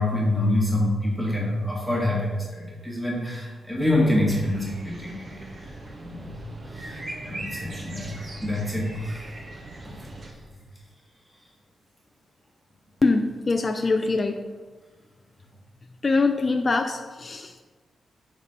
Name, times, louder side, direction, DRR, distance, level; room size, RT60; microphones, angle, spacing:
voice 1, 0.0-5.7 6.0-6.4 6.7-9.3 9.8-9.9, left 1 dB, ahead, -4 dB, 1.7 m, -26 dB
sound 1, 4.0-10.3, right 2 dB, 50° right, 1.6 m, -40 dB
voice 2, 13.0-14.5 16.0-17.6, left 3 dB, 35° left, 5 dB, 0.4 m, -23 dB
7.1 x 4.3 x 5.0 m, 1.3 s
cardioid pair, 105°, 0 cm